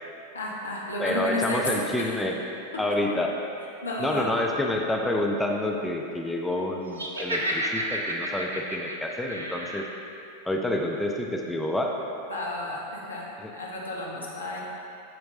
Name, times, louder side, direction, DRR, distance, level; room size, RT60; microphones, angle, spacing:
voice 1, 0.3-1.6 2.0-2.1 2.9-3.0 3.8-4.3 12.3-13.2 13.5-14.6, left 2 dB, 75° left, -4 dB, 1.3 m, -32 dB
voice 2, 1.0-2.4 2.8-3.3 4.0-9.8 10.5-11.9 13.4-13.5, left 1 dB, 5° left, 1 dB, 0.5 m, -28 dB
Laughter, 6.9-9.9, right 1 dB, 75° right, 0.7 m, -31 dB
13.5 x 4.5 x 2.7 m, 2.7 s
figure-of-eight pair, 90°, 0 cm